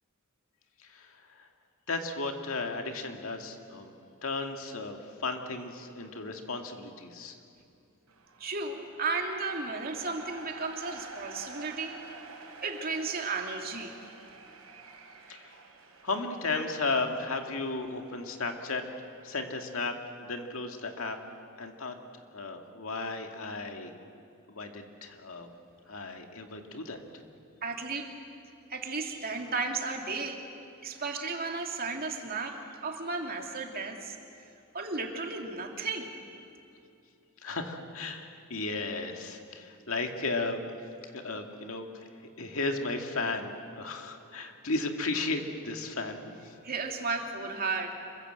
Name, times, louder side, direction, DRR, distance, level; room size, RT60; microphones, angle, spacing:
voice 1, 1.9-3.9 4.2-7.3 15.3-15.5 16.0-18.8 19.2-21.2 21.6-21.9 22.3-23.9 24.5-25.5 25.9-27.0 37.4-40.6 41.1-41.9 42.4-46.2 46.4-46.5, left 3 dB, 65° left, 4 dB, 2.2 m, -34 dB
sound 1, 8.1-19.6, right 4 dB, 85° right, 4.2 m, -50 dB
voice 2, 8.4-12.0 12.6-14.0 27.6-28.1 28.7-30.4 30.8-34.2 34.7-36.1 46.6-47.9, right 4 dB, 45° right, 2 dB, 2.7 m, -34 dB
27.0 x 22.5 x 8.0 m, 2.6 s
head